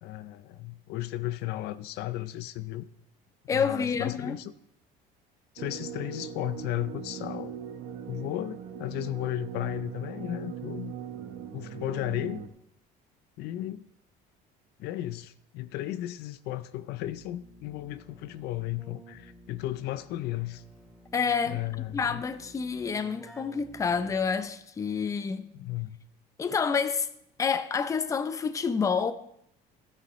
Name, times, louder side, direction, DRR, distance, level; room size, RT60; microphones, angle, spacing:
voice 1, 0.0-2.9 3.5-4.5 5.5-7.6 8.1-10.9 11.5-12.4 13.4-13.9 14.8-20.6 21.5-22.2 25.5-26.0, left 15 dB, 65° left, 0.5 m, -34 dB
voice 2, 3.5-4.4 21.1-21.6 21.9-25.5 26.4-27.1 27.4-29.1, left 6 dB, 15° left, 0.6 m, -28 dB
sound 1, 5.6-12.5, right 8 dB, 80° right, 1.3 m, -40 dB
Keyboard (musical), 17.0-24.6, right 1 dB, ahead, 2.7 m, -52 dB
15.0 x 9.8 x 3.2 m
cardioid pair, 145°, 18 cm